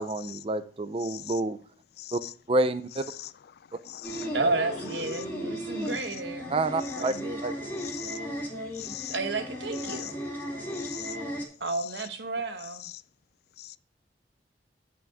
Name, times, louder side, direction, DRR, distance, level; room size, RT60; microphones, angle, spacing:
voice 1, 0.0-1.6 2.1-2.2 2.5-3.0 6.5-7.1 7.4-7.7, right 2 dB, 35° right, 0.5 m, -28 dB
voice 2, 1.0-1.4 2.0-2.3 3.2-3.3 3.9-4.3 7.8-8.2 8.8-9.1 10.0-10.1 10.8-11.2 13.6-13.8, left 14 dB, 60° left, 0.3 m, -40 dB
sound 1, 4.0-11.5, equal, 10° left, 2.3 m, -36 dB
voice 3, 4.3-6.5 7.0-7.5 9.1-10.2 11.6-12.9, right 3 dB, 75° right, 1.1 m, -31 dB
8.8 x 6.0 x 3.5 m
head